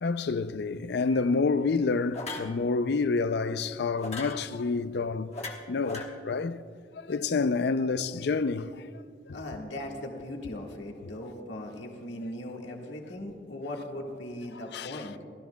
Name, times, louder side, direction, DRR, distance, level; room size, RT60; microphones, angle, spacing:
voice 1, 0.0-5.3 5.7-6.6 6.9-8.9 9.3-9.4 14.7-15.0, left 4 dB, 65° left, 0.4 m, -28 dB
sound 1, 1.1-1.3 2.1-2.5 4.0-4.4 5.3-6.0, left 3 dB, 35° left, 1.2 m, -38 dB
voice 2, 9.3-15.1, left 1 dB, 85° left, 1.6 m, -39 dB
30.0 x 13.0 x 2.3 m
head